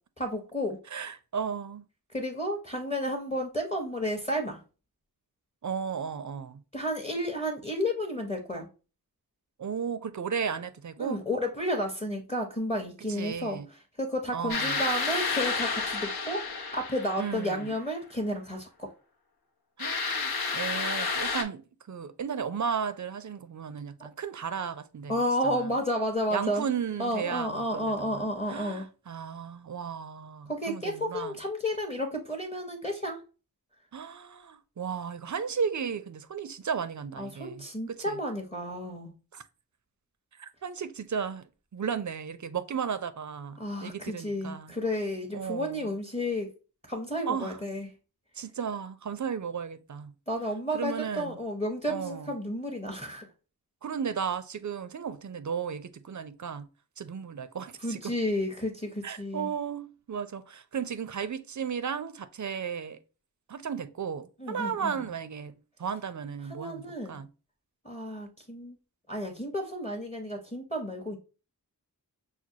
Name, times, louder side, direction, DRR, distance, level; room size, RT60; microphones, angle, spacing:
voice 1, 0.2-0.8 2.1-4.6 6.7-8.7 11.0-18.9 25.1-26.6 27.0-28.9 30.5-33.2 37.2-39.1 43.6-46.5 46.9-47.9 50.3-53.3 57.8-59.5 64.4-65.1 66.5-67.2 67.8-68.8 69.1-71.2, equal, 20° left, 0.7 m, -32 dB
voice 2, 0.9-1.8 5.6-6.6 9.6-11.2 13.1-13.7 14.3-14.8 17.2-17.7 19.8-21.6 21.9-25.2 25.4-25.7 26.3-28.2 28.5-31.3 33.9-38.2 39.3-39.4 40.4-41.5 41.7-44.7 45.3-45.9 47.3-47.6 48.4-50.1 50.7-51.4 51.9-52.3 53.8-56.7 57.0-58.1 59.0-63.0 63.5-67.3, right 7 dB, 50° right, 0.4 m, -34 dB
sound 1, 14.5-17.7 19.8-21.4, left 4 dB, 70° left, 0.7 m, -31 dB
6.0 x 2.2 x 2.7 m
wide cardioid pair, 55°, 38 cm